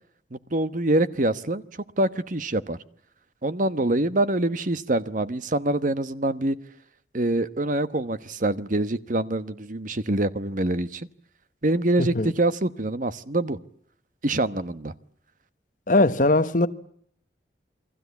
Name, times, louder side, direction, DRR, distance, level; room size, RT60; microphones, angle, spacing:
voice 1, 0.3-1.6 2.0-2.8 3.4-6.6 7.1-11.1 11.6-13.6 14.2-14.9, right 1 dB, 45° right, 1.1 m, -25 dB
voice 2, 12.0-12.3 15.9-16.7, left 2 dB, 50° left, 1.1 m, -20 dB
29.0 x 22.5 x 8.3 m
head